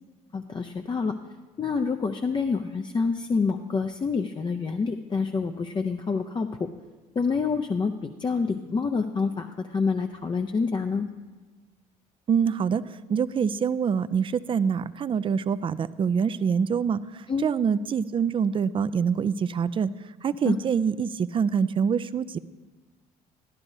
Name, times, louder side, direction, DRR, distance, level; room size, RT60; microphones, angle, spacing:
voice 1, 0.3-1.2 1.6-6.7 7.2-11.1 17.3-17.5 20.4-20.6, left 4 dB, 25° left, 5 dB, 0.5 m, -27 dB
voice 2, 12.3-12.8 13.1-19.9 20.2-22.4, right 6 dB, 30° right, 14 dB, 0.4 m, -25 dB
12.5 x 11.5 x 2.7 m, 1.3 s
supercardioid pair, 70°, 18 cm